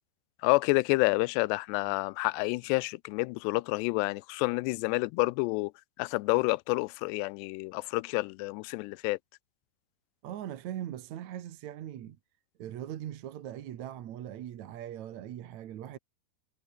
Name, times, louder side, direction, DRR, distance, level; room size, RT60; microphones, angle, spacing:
voice 1, 0.4-5.7 6.0-9.2, left 24 dB, 85° left, 2.7 m, -29 dB
voice 2, 10.2-12.2 12.6-16.0, right 11 dB, 60° right, 2.0 m, -40 dB
omnidirectional pair, 4.8 m